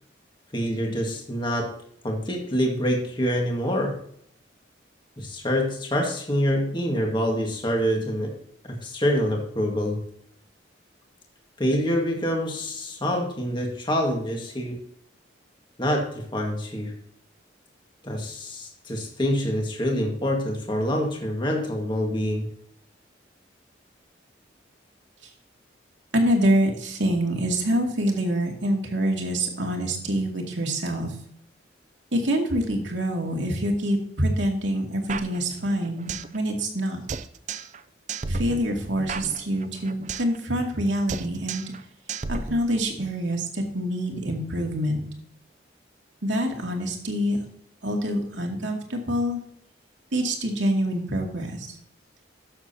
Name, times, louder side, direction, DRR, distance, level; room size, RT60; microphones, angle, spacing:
voice 1, 0.5-1.7 2.0-4.0 5.2-8.3 8.6-10.0 11.6-14.8 15.8-16.9 18.0-22.5, equal, 25° left, 1 dB, 1.8 m, -26 dB
voice 2, 26.1-31.1 32.1-37.0 38.3-41.6 42.3-45.0 46.2-47.4 47.8-49.4 50.1-51.7, equal, 80° right, 1 dB, 2.4 m, -26 dB
sound 1, 35.1-36.4 36.6-36.7 37.1-37.8 38.1-40.4 40.6-40.8 41.1-41.8 42.1-43.1, right 4 dB, 40° right, 0.5 m, -34 dB
12.5 x 7.3 x 2.8 m, 0.67 s
head